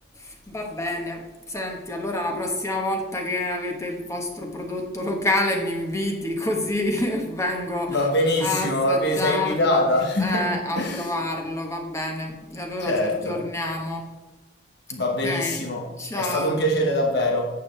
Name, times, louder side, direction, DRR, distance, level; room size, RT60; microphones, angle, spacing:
voice 1, 0.1-8.1 8.4-9.8 10.2-14.1 15.0-15.7 16.0-16.6, left 1 dB, 15° left, 1 dB, 1.2 m, -28 dB
voice 2, 7.9-10.4 10.8-11.1 12.8-13.4 14.9-15.8 16.2-17.5, left 1 dB, 60° left, 1 dB, 1.5 m, -23 dB
11.0 x 7.6 x 3.3 m, 1.2 s
head